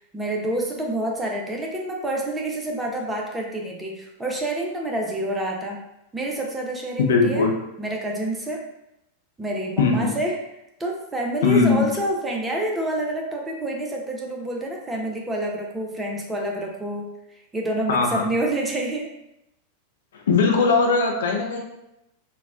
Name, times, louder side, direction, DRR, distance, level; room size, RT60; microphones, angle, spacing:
voice 1, 0.0-5.8 6.1-7.5 7.8-8.6 9.4-10.4 10.8-17.1 17.5-19.1, right 1 dB, 10° right, -1 dB, 0.5 m, -28 dB
voice 2, 7.0-7.5 9.8-10.2 11.4-11.9 17.9-18.3 20.1-21.6, left 4 dB, 60° left, 1 dB, 0.5 m, -20 dB
3.9 x 2.1 x 2.4 m, 0.84 s
figure-of-eight pair, 90°, 0 cm